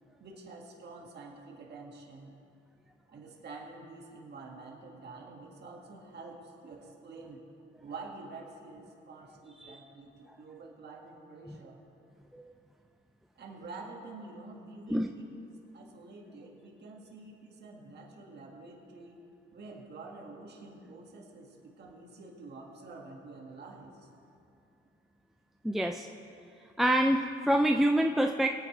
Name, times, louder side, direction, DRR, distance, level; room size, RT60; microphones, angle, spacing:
voice 1, 0.2-2.4 3.1-7.4 7.8-11.8 13.4-15.3 15.7-19.3 19.5-24.1, right 3 dB, 55° right, -1 dB, 2.0 m, -48 dB
voice 2, 25.6-26.1 26.8-28.5, right 1 dB, ahead, 4 dB, 0.4 m, -26 dB
21.0 x 9.1 x 3.3 m, 2.6 s
cardioid pair, 90°, 20 cm